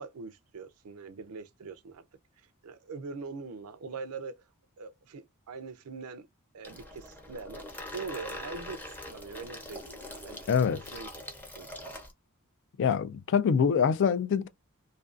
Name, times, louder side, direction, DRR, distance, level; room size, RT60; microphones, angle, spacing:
voice 1, 0.0-2.0 2.4-4.4 4.8-6.3 6.5-10.5 10.9-11.1 11.5-11.7, right 4 dB, 70° right, 0.5 m, -42 dB
Water tap faucet / Sink (filling or washing), 6.6-12.1, left 1 dB, 10° left, 0.6 m, -43 dB
voice 2, 10.5-10.8 12.8-14.5, left 6 dB, 55° left, 0.3 m, -25 dB
2.4 x 2.3 x 2.4 m
head